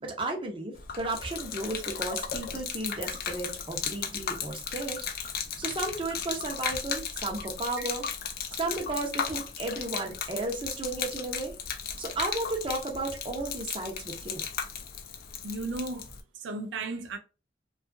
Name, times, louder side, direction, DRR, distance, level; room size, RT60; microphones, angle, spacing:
voice 1, 0.0-5.0 5.6-8.0 8.6-11.5 12.0-14.4, right 2 dB, 30° right, 0.6 m, -34 dB
Gurgling / Liquid, 0.7-16.2, left 7 dB, 55° left, 0.4 m, -36 dB
voice 2, 15.4-16.1 16.3-17.2, right 3 dB, 80° right, 0.4 m, -35 dB
2.7 x 2.3 x 2.5 m
head